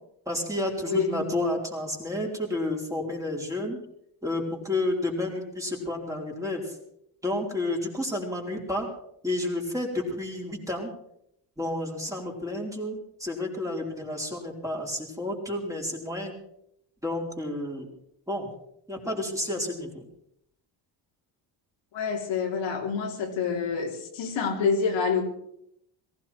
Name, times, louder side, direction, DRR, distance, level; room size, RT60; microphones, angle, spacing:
voice 1, 0.3-3.8 4.2-6.7 7.2-8.9 9.2-10.9 11.6-16.3 17.0-17.9 18.3-18.5 18.9-20.0, left 1 dB, 5° right, -1 dB, 4.6 m, -30 dB
voice 2, 0.8-1.4 21.9-25.2, left 5 dB, 75° left, 0 dB, 3.8 m, -27 dB
19.0 x 16.0 x 4.6 m, 0.74 s
cardioid pair, 100°, 45 cm